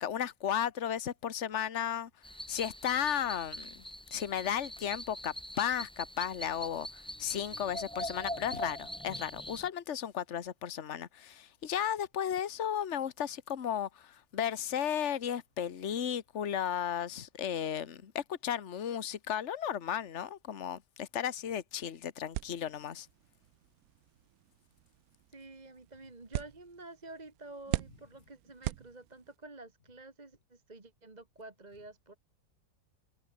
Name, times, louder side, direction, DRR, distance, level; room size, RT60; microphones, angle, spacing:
voice 1, 0.0-2.1 2.5-3.8 4.1-6.9 7.2-23.1, left 9 dB, 50° left, 1.5 m, -34 dB
sound 1, 2.2-9.7, equal, 5° left, 1.5 m, -43 dB
sound 2, 22.3-29.5, right 15 dB, 70° right, 1.0 m, -42 dB
voice 2, 25.3-32.2, right 2 dB, 25° right, 2.0 m, -50 dB
omnidirectional pair, 1.7 m